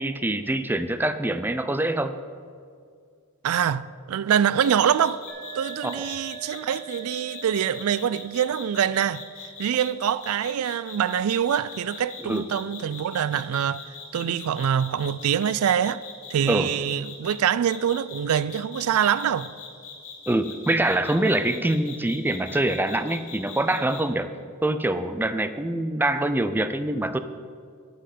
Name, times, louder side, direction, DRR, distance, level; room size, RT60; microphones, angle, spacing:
voice 1, 0.0-2.2 5.8-6.1 12.2-12.4 16.5-16.7 20.3-24.3 24.6-27.2, right 1 dB, 10° right, 0.4 m, -25 dB
voice 2, 3.4-5.2 5.5-9.2 9.6-13.8 14.1-16.0 16.3-19.5, right 9 dB, 80° right, 0.3 m, -24 dB
sound 1, 4.6-17.3 17.7-24.0, left 7 dB, 75° left, 2.3 m, -41 dB
sound 2, 5.3-12.8, right 9 dB, 45° right, 1.5 m, -46 dB
11.5 x 7.9 x 5.4 m
head